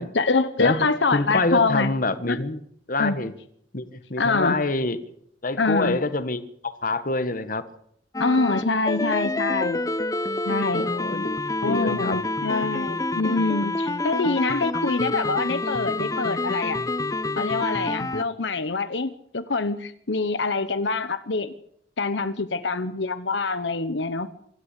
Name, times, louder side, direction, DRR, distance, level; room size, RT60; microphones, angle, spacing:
voice 1, 0.0-1.9 2.3-2.4 3.0-3.2 4.2-4.6 5.6-6.0 8.2-9.8 10.4-10.9 11.6-16.8 17.4-21.5 22.0-24.3, left 3 dB, 75° left, 11 dB, 1.0 m, -25 dB
voice 2, 1.1-2.6 2.9-3.3 3.7-5.0 5.4-7.6 10.7-12.2, left 2 dB, 50° left, 13 dB, 1.4 m, -26 dB
sound 1, 8.1-18.2, left 2 dB, 20° left, 0.8 m, -27 dB
25.0 x 13.5 x 8.3 m, 0.70 s
head